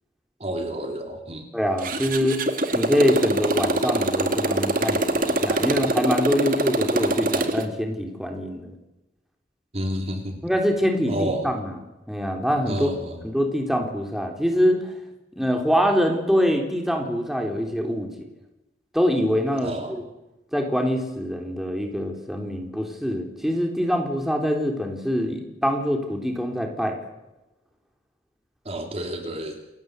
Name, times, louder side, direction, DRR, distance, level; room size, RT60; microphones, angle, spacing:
voice 1, 0.4-1.5 9.7-10.4 11.1-11.5 12.7-13.2 19.6-20.0 28.6-29.6, equal, 35° right, 4 dB, 3.1 m, -30 dB
voice 2, 1.5-2.4 2.7-8.7 10.4-11.7 12.1-12.9 13.2-14.9 15.4-18.1 18.9-20.0 20.5-27.0, equal, ahead, 3 dB, 3.6 m, -24 dB
Motorcycle, 1.8-7.7, right 1 dB, 50° right, 2.2 m, -24 dB
28.5 x 19.5 x 8.0 m, 0.97 s
head